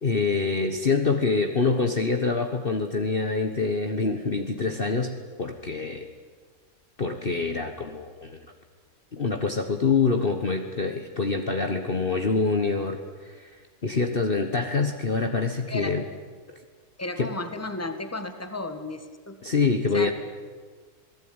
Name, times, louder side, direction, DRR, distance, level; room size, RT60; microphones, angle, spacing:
voice 1, 0.0-6.1 7.0-8.4 9.1-13.5 13.8-16.0 17.2-17.3 19.4-20.1, left 4 dB, 40° left, 5 dB, 1.5 m, -25 dB
voice 2, 17.0-19.4 19.9-20.1, left 2 dB, 10° left, 8 dB, 1.8 m, -33 dB
27.5 x 18.5 x 9.7 m, 1.5 s
omnidirectional pair, 1.6 m